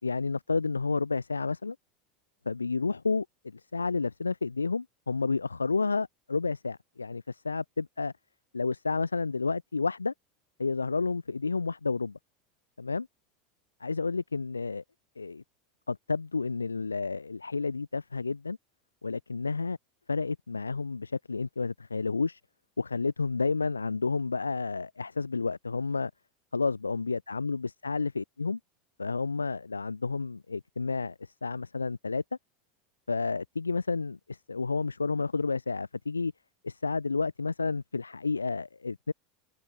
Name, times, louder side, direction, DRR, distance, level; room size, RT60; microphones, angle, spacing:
voice 1, 0.0-1.8 2.5-8.1 8.5-10.1 10.6-12.2 12.8-13.1 13.8-14.8 15.2-15.4 15.9-18.6 19.0-19.8 20.1-22.4 22.8-26.1 26.5-28.6 29.0-32.2 33.1-36.3 36.6-39.1, left 4 dB, 85° left, 5.4 m, -31 dB
figure-of-eight pair, 80°, 0 cm